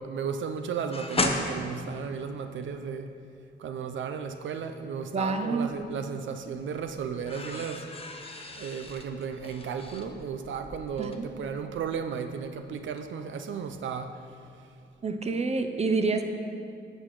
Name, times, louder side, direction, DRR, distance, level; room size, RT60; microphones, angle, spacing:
voice 1, 0.0-3.1 3.6-7.9 8.6-14.2, right 6 dB, 85° right, 7 dB, 0.5 m, -34 dB
sound 1, 0.9-3.0 5.2-6.1 6.4-12.5 12.7-13.0, left 2 dB, 30° left, 0.9 m, -35 dB
voice 2, 5.1-5.7 11.0-11.3 15.0-16.2, right 4 dB, 35° right, 7 dB, 0.8 m, -27 dB
9.9 x 7.8 x 4.8 m, 2.4 s
cardioid pair, 85°, 19 cm